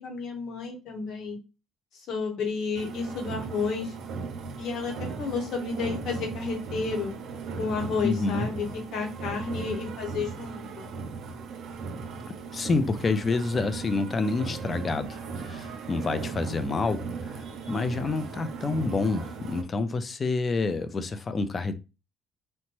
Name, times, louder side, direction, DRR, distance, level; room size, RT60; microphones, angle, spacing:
voice 1, 0.0-1.4 2.1-4.0 4.6-7.1 7.6-10.9, left 5 dB, 70° left, 1.0 m, -31 dB
sound 1, 2.8-19.6, right 4 dB, 65° right, 0.5 m, -37 dB
voice 2, 8.0-8.5 12.5-17.4 17.7-21.8, left 3 dB, 35° left, 0.4 m, -28 dB
2.9 x 2.1 x 3.0 m
cardioid pair, 100°, 0 cm